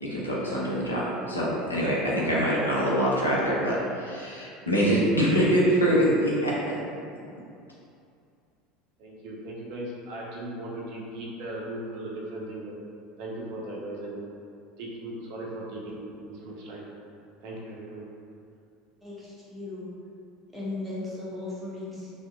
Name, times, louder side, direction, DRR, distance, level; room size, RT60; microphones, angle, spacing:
voice 1, 0.0-6.7, equal, 85° left, -6 dB, 0.5 m, -24 dB
voice 2, 9.0-12.7 13.2-14.2 14.8-16.9 17.4-18.0, right 1 dB, 55° right, -3 dB, 0.5 m, -37 dB
voice 3, 19.0-19.9 20.5-22.1, left 2 dB, 10° right, -8 dB, 0.8 m, -36 dB
2.6 x 2.1 x 2.3 m, 2.5 s
figure-of-eight pair, 70°, 0 cm